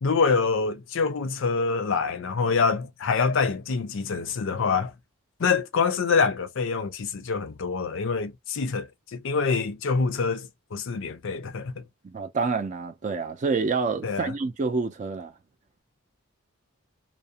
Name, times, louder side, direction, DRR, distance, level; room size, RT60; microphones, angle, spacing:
voice 1, 0.0-4.9 5.4-11.8 14.0-14.3, left 5 dB, 60° left, 0.5 m, -26 dB
voice 2, 12.0-15.3, right 4 dB, 35° right, 0.4 m, -28 dB
2.4 x 2.0 x 2.7 m
head